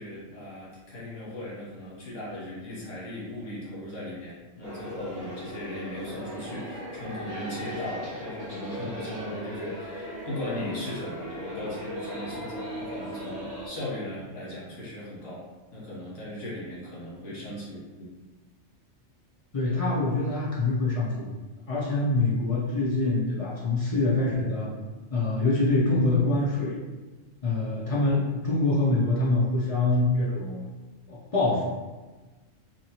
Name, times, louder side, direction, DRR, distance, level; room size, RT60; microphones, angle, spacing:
voice 1, 0.0-15.4 15.7-18.1, left 1 dB, 75° left, -7 dB, 1.4 m, -38 dB
sound 1, 4.6-13.7, equal, 55° right, 1.0 m, -38 dB
voice 2, 19.5-21.3 21.7-24.7 25.1-26.7 27.4-30.7 31.1-31.6, left 2 dB, 55° left, -6 dB, 0.4 m, -25 dB
2.8 x 2.7 x 2.8 m, 1.2 s
omnidirectional pair, 1.3 m